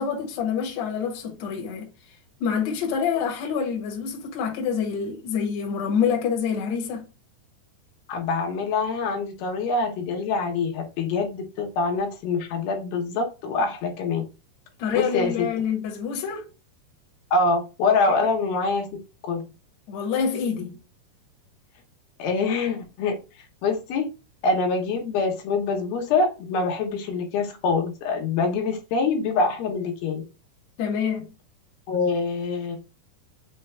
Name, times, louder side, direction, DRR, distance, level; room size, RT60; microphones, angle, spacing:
voice 1, 0.0-1.9 2.4-7.0 14.8-16.5 19.9-20.8 30.8-31.3, left 7 dB, 60° left, 1.9 m, -26 dB
voice 2, 8.1-14.2 14.9-15.5 17.3-18.9 19.2-19.4 22.2-23.2 23.6-24.1 24.4-30.2 31.9-32.8, left 4 dB, 80° left, 2.8 m, -25 dB
6.1 x 2.2 x 3.2 m
omnidirectional pair, 4.3 m